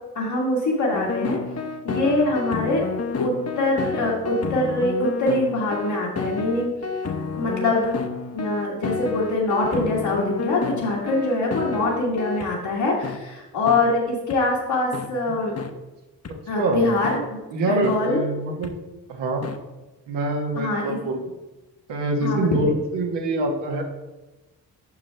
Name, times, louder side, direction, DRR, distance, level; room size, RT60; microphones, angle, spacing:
voice 1, 0.2-1.4 1.8-2.8 3.2-6.7 7.3-7.9 8.3-15.6 16.5-17.2 17.7-18.2 20.6-21.0 22.2-22.7, left 2 dB, 70° left, -6 dB, 1.9 m, -23 dB
sound 1, 0.9-12.5 13.0-13.2 13.7-13.8 14.3-14.4 14.9-15.1 15.6-15.7 16.2-16.3 17.0-17.2 17.8-18.0 18.6-18.7 19.4-19.6, left 4 dB, 35° left, 0.9 m, -30 dB
voice 2, 17.5-18.7 19.1-19.4 20.1-21.2 21.9-23.8, right 2 dB, 80° right, 1 dB, 1.6 m, -25 dB
9.1 x 6.3 x 3.4 m, 1.1 s
hypercardioid pair, 40°, 42 cm